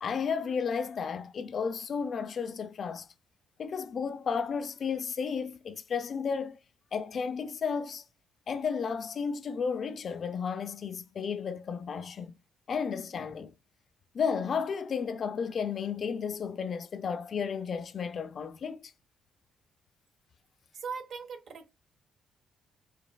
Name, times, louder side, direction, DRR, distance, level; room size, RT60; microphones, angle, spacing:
voice 1, 0.0-3.1 3.6-6.6 6.9-8.0 8.5-12.4 12.7-13.5 14.1-18.9, left 6 dB, 50° left, 0.5 m, -33 dB
voice 2, 20.7-21.7, right 5 dB, 65° right, 1.1 m, -39 dB
5.1 x 3.2 x 2.3 m
cardioid pair, 90°, 0 cm